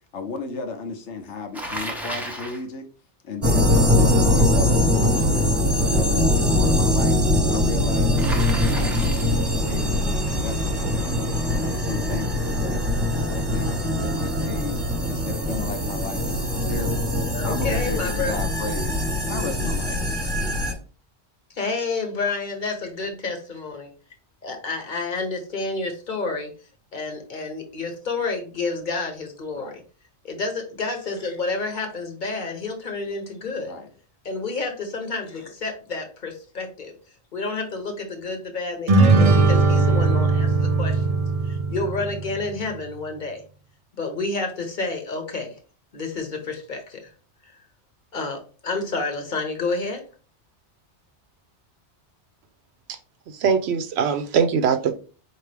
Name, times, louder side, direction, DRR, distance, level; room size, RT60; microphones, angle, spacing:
voice 1, 0.1-2.8 3.2-5.4 5.8-7.2 7.5-10.0 10.3-11.2 11.5-12.8 13.1-14.8 15.1-17.1 17.4-19.0 19.3-20.0 29.5-29.8 33.6-33.9, left 4 dB, 80° left, 5 dB, 1.1 m, -34 dB
Bicycle, 1.5-2.6 8.2-9.4, right 1 dB, ahead, 0.6 m, -33 dB
sound 1, 3.4-20.7, left 1 dB, 20° right, 1.1 m, -22 dB
voice 2, 17.3-18.3 21.5-23.9 24.4-26.5 26.9-29.8 30.2-33.7 34.2-36.9 37.3-41.2 41.4-43.4 44.0-45.5 45.9-47.1 47.4-47.5 48.1-50.0, left 3 dB, 45° left, 4 dB, 1.0 m, -29 dB
sound 2, 38.9-42.5, right 3 dB, 50° right, 0.4 m, -19 dB
voice 3, 53.3-54.9, right 6 dB, 70° right, 8 dB, 0.8 m, -21 dB
4.5 x 2.9 x 3.3 m, 0.37 s
omnidirectional pair, 1.2 m